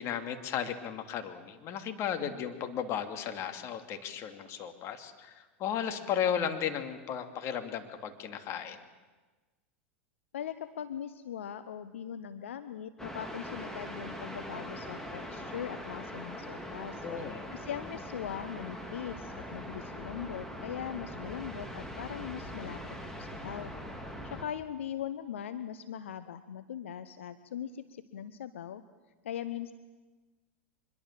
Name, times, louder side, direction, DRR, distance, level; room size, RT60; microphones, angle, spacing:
voice 1, 0.0-8.8 17.0-17.5, left 8 dB, 45° left, 7 dB, 2.7 m, -35 dB
voice 2, 10.3-17.0 17.5-22.8 23.1-23.7 24.2-28.8 29.2-29.7, left 9 dB, 80° left, 12 dB, 1.0 m, -40 dB
sound 1, 13.0-24.4, equal, 5° left, 3.5 m, -42 dB
24.5 x 22.0 x 7.6 m, 1.3 s
hypercardioid pair, 95°, 7 cm